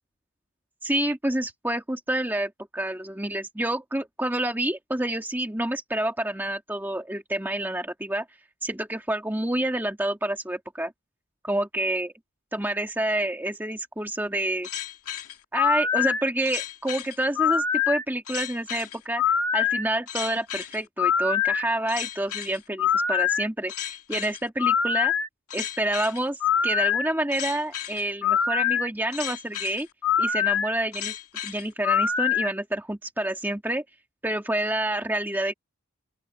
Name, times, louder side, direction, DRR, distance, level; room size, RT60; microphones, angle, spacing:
voice 1, 0.8-8.3 8.6-10.9 11.4-12.1 12.5-14.7 15.5-19.2 19.5-25.1 25.5-29.9 30.2-31.2 31.4-33.8 34.2-35.5, right 1 dB, 10° right, 1.7 m, -28 dB
sound 1, 14.6-32.5, left 8 dB, 90° left, 2.1 m, -25 dB
open air
head